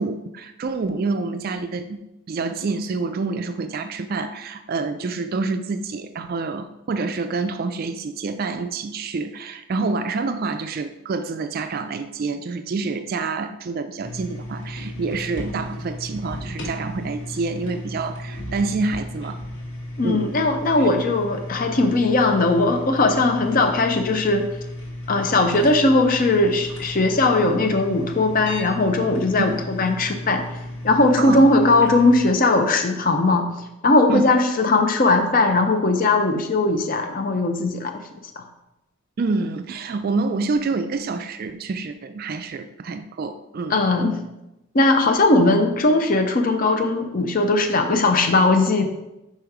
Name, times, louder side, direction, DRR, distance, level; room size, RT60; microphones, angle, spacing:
voice 1, 0.0-2.0 2.3-19.4 20.0-20.4 29.4-29.5 31.2-31.5 34.1-34.4 39.2-43.8, right 3 dB, 40° right, 9 dB, 0.3 m, -27 dB
sound 1, 14.0-32.3, left 1 dB, 55° left, 1.9 m, -34 dB
voice 2, 20.0-24.5 25.1-30.4 30.8-33.5 33.8-38.0 38.4-38.5 43.7-44.2 44.7-48.8, left 2 dB, 40° left, 5 dB, 0.5 m, -19 dB
5.5 x 5.1 x 4.6 m, 0.94 s
head